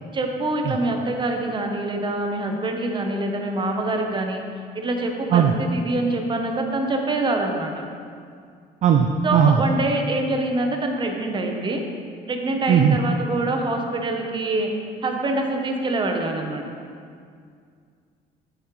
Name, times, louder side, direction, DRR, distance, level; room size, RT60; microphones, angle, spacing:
voice 1, 0.1-4.4 4.7-7.8 9.2-11.8 12.3-14.7 15.0-16.6, right 2 dB, 30° right, 3 dB, 0.9 m, -25 dB
voice 2, 8.8-9.6 12.7-13.0, right 8 dB, 45° right, 5 dB, 0.4 m, -17 dB
8.3 x 7.1 x 3.2 m, 2.2 s
cardioid pair, 110°, 17 cm